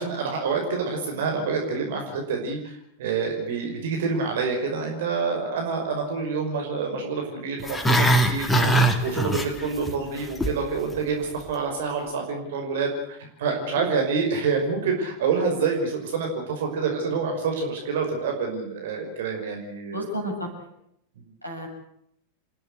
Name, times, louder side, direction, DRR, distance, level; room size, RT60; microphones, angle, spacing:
voice 1, 0.0-8.7 9.0-20.1 21.2-21.3, right 5 dB, 55° right, 2 dB, 5.7 m, -27 dB
Growling, 7.6-9.9 10.2-10.6 10.9-11.0, right 1 dB, 10° left, 3.1 m, -21 dB
voice 2, 19.9-20.7 21.4-21.7, equal, 90° right, 0 dB, 8.0 m, -32 dB
30.0 x 16.0 x 8.2 m, 0.74 s
figure-of-eight pair, 90°, 0 cm